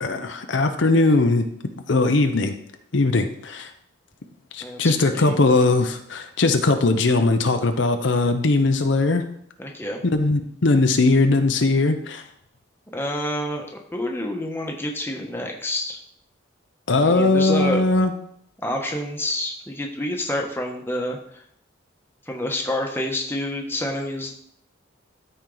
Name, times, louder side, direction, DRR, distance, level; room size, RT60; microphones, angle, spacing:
voice 1, 0.0-1.5 1.9-2.5 2.9-3.7 4.5-9.2 10.0-12.2 16.9-18.1, left 3 dB, 70° left, 7 dB, 0.7 m, -19 dB
voice 2, 4.6-5.4 9.6-10.0 12.9-16.0 17.0-17.8 18.6-21.4 22.3-24.3, left 1 dB, 10° left, 1 dB, 1.1 m, -28 dB
13.5 x 4.5 x 3.9 m, 0.69 s
head